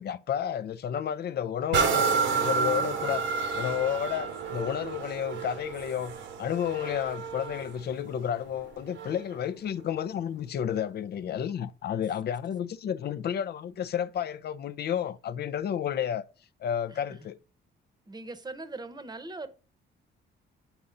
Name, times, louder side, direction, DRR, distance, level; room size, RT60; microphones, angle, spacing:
voice 1, 0.0-6.1 6.4-16.2 16.6-17.4, left 9 dB, 55° left, 0.5 m, -31 dB
sound 1, 1.7-9.3 9.9-10.0, right 5 dB, 70° right, 1.0 m, -30 dB
voice 2, 18.1-19.5, right 2 dB, 20° right, 0.9 m, -40 dB
8.2 x 4.2 x 3.8 m
cardioid pair, 90°, 20 cm